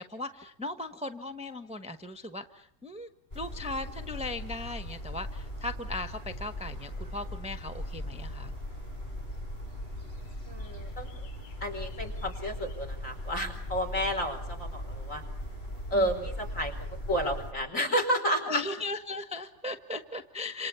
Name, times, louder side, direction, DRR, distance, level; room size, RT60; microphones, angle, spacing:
voice 1, 0.0-3.1 3.3-8.5 15.9-16.1 18.5-20.7, left 2 dB, 5° right, 7 dB, 1.1 m, -38 dB
sound 1, 3.3-17.5, left 1 dB, 35° left, 7.6 m, -39 dB
voice 2, 10.5-11.3 11.6-15.2 15.9-16.7 17.1-18.6, equal, 50° left, 7 dB, 5.0 m, -31 dB
28.5 x 27.5 x 7.0 m, 0.70 s
omnidirectional pair, 1.7 m